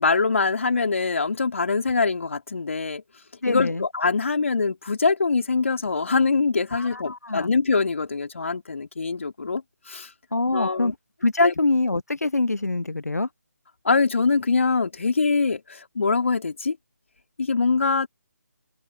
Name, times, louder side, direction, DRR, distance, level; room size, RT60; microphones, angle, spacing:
voice 1, 0.0-3.0 3.5-9.6 9.9-10.1 10.5-10.9 11.4-11.5 13.8-16.8 17.4-18.1, left 4 dB, 50° left, 3.4 m, -23 dB
voice 2, 3.4-3.8 6.7-7.5 10.3-10.9 11.2-13.3, left 2 dB, 70° left, 0.9 m, -24 dB
open air
figure-of-eight pair, 150°, 9 cm